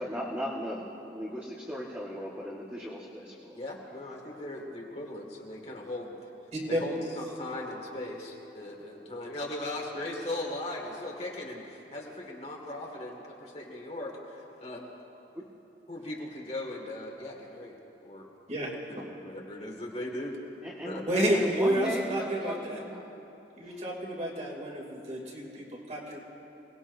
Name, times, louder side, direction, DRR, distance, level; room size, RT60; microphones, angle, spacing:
voice 1, 0.0-3.6 15.3-15.4 20.6-23.1 23.6-23.8, equal, 10° right, -6 dB, 1.6 m, -37 dB
voice 2, 3.5-6.2 6.7-14.9 15.9-17.7 18.0-18.3 18.9-20.4 20.8-21.0, left 1 dB, 35° left, -1 dB, 2.2 m, -38 dB
voice 3, 21.1-22.8 23.5-26.2, right 1 dB, 40° right, -2 dB, 2.9 m, -30 dB
27.5 x 19.5 x 2.7 m, 3.0 s
head